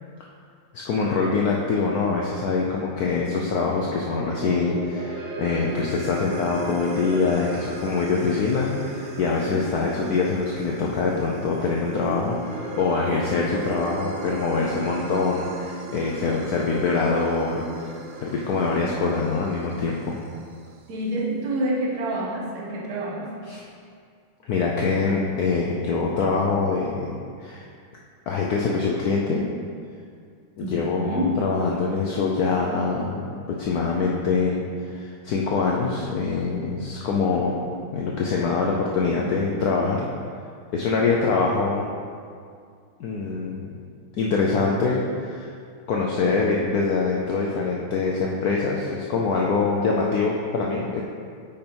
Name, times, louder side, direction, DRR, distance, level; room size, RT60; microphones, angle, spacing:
voice 1, 0.7-20.2 23.5-23.6 24.4-27.1 27.4-27.6 28.3-29.4 30.6-37.6 37.9-40.0 40.7-41.9 43.0-43.7 44.1-45.5 45.9-51.0, left 4 dB, 85° left, -2 dB, 0.8 m, -24 dB
sound 1, 4.0-20.4, right 3 dB, 75° right, 1.3 m, -37 dB
voice 2, 20.9-23.3 30.6-31.4, right 1 dB, 55° right, -3 dB, 1.4 m, -27 dB
5.2 x 5.2 x 4.4 m, 2.2 s
omnidirectional pair, 2.3 m